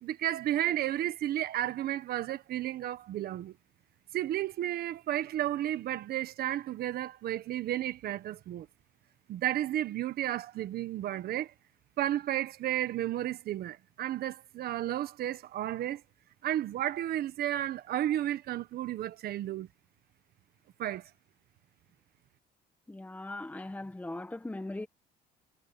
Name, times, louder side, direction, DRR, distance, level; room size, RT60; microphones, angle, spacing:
voice 1, 0.0-3.6 4.1-8.7 9.3-11.5 12.0-16.0 16.4-19.7 20.8-21.0, right 12 dB, 65° right, 1.4 m, -32 dB
voice 2, 22.9-24.9, left 2 dB, 10° left, 1.6 m, -39 dB
cardioid pair, 110°, 17 cm